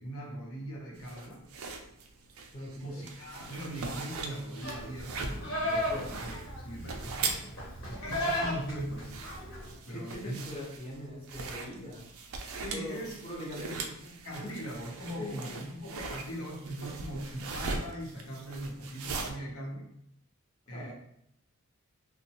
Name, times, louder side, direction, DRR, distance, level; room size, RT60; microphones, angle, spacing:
voice 1, 0.0-1.4 2.8-7.5 7.8-9.2 9.8-10.6 12.5-13.2 13.6-13.7 14.2-19.9 20.7-20.9, equal, 85° left, -2 dB, 0.8 m, -40 dB
sound 1, 1.0-19.3, right 4 dB, 75° right, 0.4 m, -41 dB
voice 2, 2.5-3.0 5.8-6.2 9.9-12.0 12.7-14.1 15.2-15.6 20.7-20.9, left 1 dB, 25° left, -4 dB, 0.6 m, -42 dB
Livestock farm animals working animals, 4.6-9.8, left 1 dB, 55° left, 1.0 m, -35 dB
2.9 x 2.1 x 2.8 m, 0.74 s
head